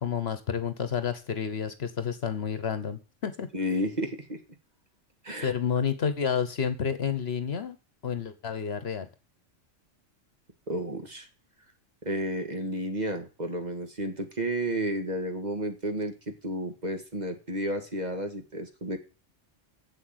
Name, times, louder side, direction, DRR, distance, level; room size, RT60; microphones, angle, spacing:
voice 1, 0.0-3.5 5.4-7.8 8.0-9.1, left 7 dB, 60° left, 11 dB, 1.2 m, -30 dB
voice 2, 3.5-4.4 5.2-5.5 10.7-11.3 12.1-19.0, equal, 35° right, 5 dB, 1.7 m, -32 dB
7.8 x 7.5 x 8.0 m, 0.33 s
omnidirectional pair, 1.3 m